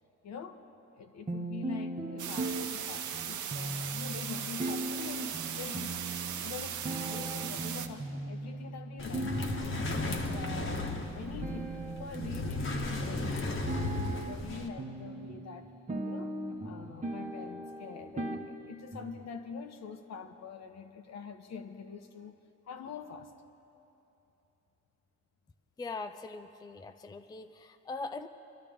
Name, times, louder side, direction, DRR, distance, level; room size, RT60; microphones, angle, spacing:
voice 1, 0.2-0.6 1.0-6.0 6.4-10.9 11.1-11.7 12.0-15.7 16.1-16.4 16.6-22.4 22.7-23.3, left 6 dB, 60° left, 7 dB, 1.1 m, -45 dB
sound 1, 1.3-19.3, right 2 dB, 25° right, 1.1 m, -39 dB
sound 2, 2.2-7.9, right 9 dB, 75° right, 0.8 m, -38 dB
sound 3, 9.0-14.7, left 2 dB, 40° left, 1.4 m, -35 dB
voice 2, 25.8-28.3, left 3 dB, 15° left, 8 dB, 0.5 m, -41 dB
25.0 x 12.5 x 3.6 m, 3.0 s
cardioid pair, 90°, 30 cm